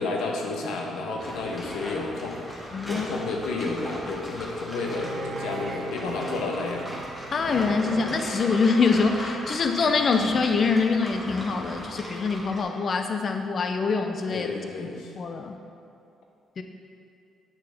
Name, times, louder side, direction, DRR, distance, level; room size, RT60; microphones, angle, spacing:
voice 1, 0.0-6.9 14.3-15.1, left 3 dB, 85° left, 0 dB, 1.2 m, -31 dB
sound 1, 1.2-12.6, equal, 10° left, 1.8 m, -38 dB
voice 2, 2.7-3.1 7.3-14.5 15.2-15.6 16.6-16.7, left 4 dB, 50° left, 6 dB, 0.5 m, -24 dB
Bowed string instrument, 4.8-10.3, right 4 dB, 75° right, 0.7 m, -39 dB
9.0 x 6.7 x 3.5 m, 2.4 s
cardioid pair, 90°, 0 cm